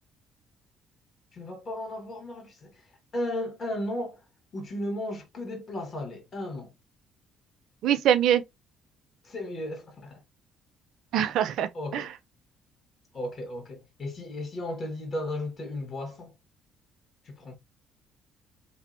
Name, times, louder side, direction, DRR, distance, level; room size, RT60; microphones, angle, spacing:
voice 1, 1.3-2.8 3.1-4.2 4.5-6.7 9.2-10.2 11.7-12.1 13.1-16.3 17.2-17.5, left 1 dB, 45° left, 1.2 m, -35 dB
voice 2, 7.8-8.4 11.1-12.0, right 10 dB, 70° right, 0.3 m, -23 dB
2.6 x 2.0 x 2.4 m
supercardioid pair, 60°, 0 cm